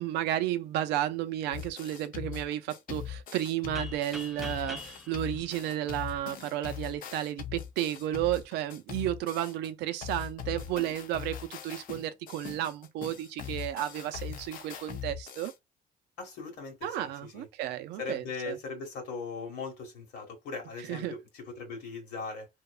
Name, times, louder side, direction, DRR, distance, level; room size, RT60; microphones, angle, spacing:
voice 1, 0.0-15.5 16.8-18.6 20.9-21.1, right 12 dB, 85° right, 0.4 m, -33 dB
sound 1, 1.5-9.7 10.0-15.5, left 9 dB, 55° left, 0.5 m, -41 dB
sound 2, 3.7-6.5, equal, ahead, 0.4 m, -44 dB
voice 2, 16.2-17.5 18.0-22.5, left 4 dB, 90° left, 1.5 m, -39 dB
2.8 x 2.1 x 2.3 m
cardioid pair, 110°, 17 cm